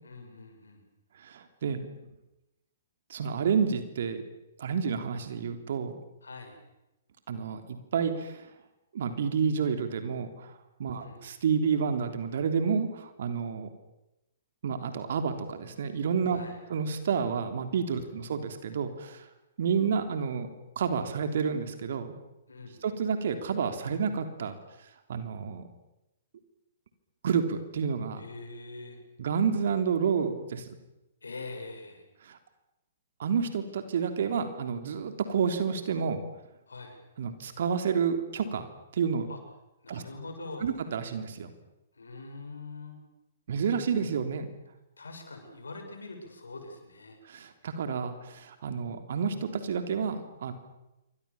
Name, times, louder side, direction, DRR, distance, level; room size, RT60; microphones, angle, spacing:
voice 1, 0.0-0.8 6.2-6.6 10.9-11.2 16.3-16.6 18.0-18.2 22.5-22.8 28.2-29.0 31.2-32.1 36.7-37.0 39.3-39.4 39.8-40.7 41.9-43.0 45.0-47.2, left 3 dB, 75° left, 4 dB, 7.3 m, -43 dB
voice 2, 1.2-1.9 3.1-4.2 4.6-5.9 7.3-8.5 8.9-13.7 14.6-16.4 16.7-19.2 19.6-20.5 20.7-22.1 22.8-24.5 25.1-25.7 27.2-28.2 29.2-30.7 32.2-32.4 33.2-36.2 37.2-38.7 38.9-39.3 39.9-40.0 40.6-41.5 43.5-44.5 47.3-50.5, right 6 dB, 60° right, 8 dB, 3.4 m, -30 dB
28.0 x 25.0 x 7.3 m, 0.95 s
figure-of-eight pair, 115°, 0 cm